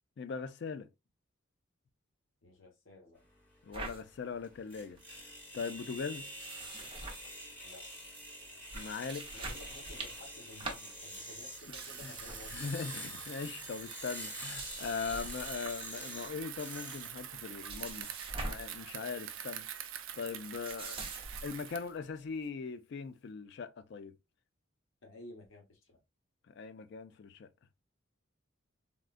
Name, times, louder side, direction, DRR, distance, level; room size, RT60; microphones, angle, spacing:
voice 1, 0.2-0.9 3.6-5.2 5.5-6.3 8.7-9.3 12.0-12.1 12.5-24.2 26.5-27.5, left 5 dB, 55° left, 0.3 m, -40 dB
voice 2, 2.4-3.2 7.6-7.9 9.3-12.7 25.0-26.0, left 2 dB, 70° left, 1.0 m, -53 dB
sound 1, 3.2-17.9, equal, 10° left, 1.1 m, -47 dB
sound 2, 3.7-4.0 4.5-4.6 4.8-5.2 6.2-7.8 8.1-8.3 8.6-12.9 13.2-13.5 14.2-15.9 16.2-16.7 17.0-18.8 19.1-19.3 20.2-21.6, right 2 dB, 25° right, 0.7 m, -45 dB
Bicycle, 11.5-22.0, right 10 dB, 75° right, 0.5 m, -46 dB
3.6 x 2.3 x 2.4 m
head